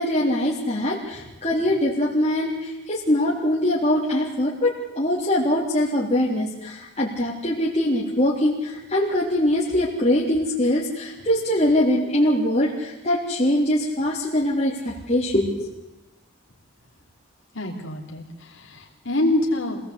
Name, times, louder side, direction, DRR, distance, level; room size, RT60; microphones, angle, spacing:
voice 1, 0.0-15.7, left 1 dB, 30° left, -6 dB, 3.7 m, -22 dB
voice 2, 17.5-19.8, left 1 dB, 60° left, -1 dB, 4.2 m, -26 dB
26.5 x 17.5 x 8.5 m, 0.97 s
head